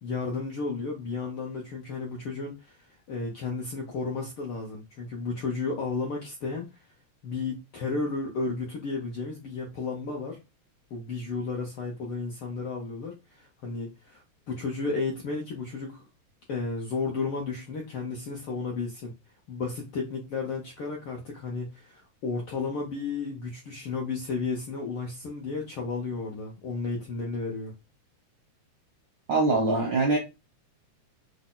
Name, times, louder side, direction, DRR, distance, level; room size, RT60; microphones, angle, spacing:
voice 1, 0.0-6.7 7.2-10.4 10.9-16.0 16.5-19.1 19.5-27.7, left 4 dB, 70° left, 1.2 m, -33 dB
voice 2, 29.3-30.2, right 3 dB, 70° right, 1.1 m, -23 dB
6.1 x 2.2 x 3.8 m
omnidirectional pair, 3.4 m